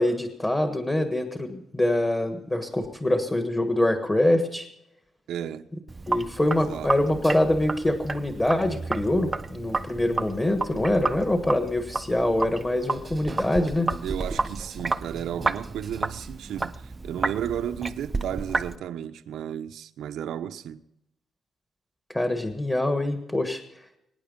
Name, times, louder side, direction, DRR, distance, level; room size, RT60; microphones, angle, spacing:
voice 1, 0.0-4.7 6.1-13.9 22.1-23.6, left 1 dB, 15° left, 1.5 m, -24 dB
voice 2, 5.3-5.7 6.7-7.3 14.0-20.8, right 10 dB, 90° right, 0.9 m, -33 dB
Sink (filling or washing), 5.9-18.7, right 3 dB, 20° right, 0.6 m, -31 dB
24.0 x 9.8 x 5.4 m
cardioid pair, 155°, 0 cm